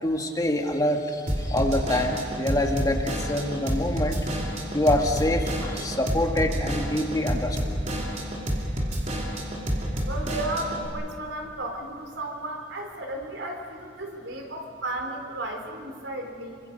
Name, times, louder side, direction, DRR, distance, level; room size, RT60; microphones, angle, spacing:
voice 1, 0.0-4.2 4.7-7.7, left 1 dB, 20° left, 3 dB, 1.8 m, -26 dB
Drum kit / Drum, 1.3-10.9, equal, 40° right, 3.1 m, -29 dB
voice 2, 10.1-16.6, right 2 dB, 80° right, 2 dB, 3.9 m, -34 dB
27.0 x 25.0 x 5.4 m, 2.3 s
head